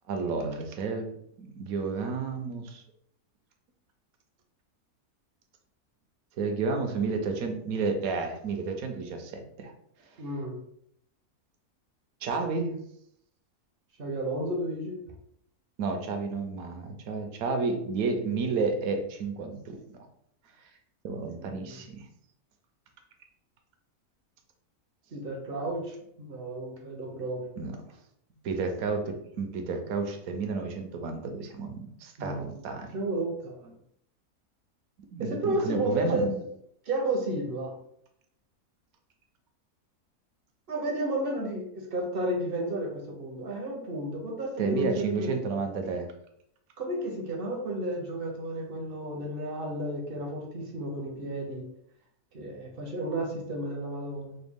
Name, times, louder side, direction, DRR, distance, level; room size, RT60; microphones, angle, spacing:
voice 1, 0.1-1.0 1.4-2.8 6.4-9.7 12.2-12.8 15.8-19.8 21.0-22.0 27.6-27.8 28.4-32.9 35.1-36.3 44.6-46.1, right 4 dB, 75° right, 5 dB, 1.1 m, -31 dB
voice 2, 10.2-10.6 14.0-15.0 21.3-21.7 25.1-27.5 31.2-31.3 32.2-32.6 32.9-33.7 35.2-36.4 36.9-37.7 40.7-45.6 46.8-51.7 52.3-54.4, right 1 dB, 50° right, 0 dB, 0.7 m, -32 dB
4.0 x 2.2 x 3.4 m, 0.73 s
omnidirectional pair, 1.6 m